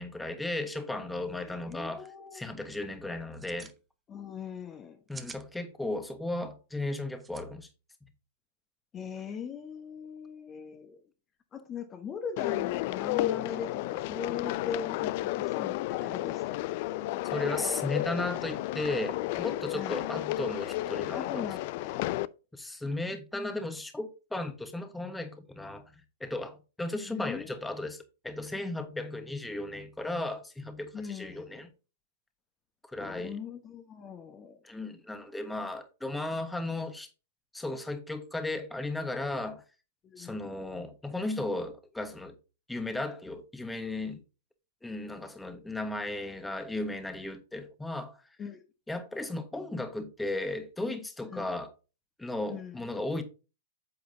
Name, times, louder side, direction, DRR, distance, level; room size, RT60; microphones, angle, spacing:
voice 1, 0.0-2.0 2.3-3.7 5.1-7.7 17.3-21.4 22.5-25.8 26.2-31.7 32.9-33.4 34.6-37.1 37.5-39.6 40.2-42.3 42.7-44.2 44.8-48.2 48.9-51.7 52.2-53.2, left 2 dB, 5° left, 1.2 m, -35 dB
sound 1, 1.3-1.4 1.6-1.7 2.1-2.4 3.2-3.8 4.8-5.4 7.2-7.4, right 5 dB, 15° right, 0.9 m, -47 dB
voice 2, 1.5-2.4 4.1-5.0 8.9-11.0 11.5-17.1 19.7-20.1 21.1-22.3 27.0-27.5 30.9-31.6 33.0-34.6 40.0-40.6 48.4-48.6 51.3-51.5 52.5-52.9, left 6 dB, 25° left, 1.0 m, -41 dB
sound 2, 12.4-22.3, left 16 dB, 50° left, 0.4 m, -32 dB
8.7 x 7.7 x 2.7 m
figure-of-eight pair, 105°, 0 cm